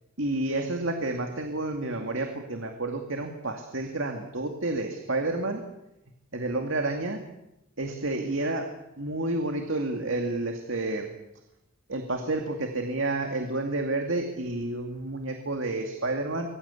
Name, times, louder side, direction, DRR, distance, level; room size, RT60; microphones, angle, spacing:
voice 1, 0.2-5.6 6.3-7.2 7.8-8.7 9.0-11.1 11.9-16.5, right 2 dB, 60° right, 4 dB, 2.4 m, -30 dB
25.5 x 22.0 x 8.4 m, 0.91 s
head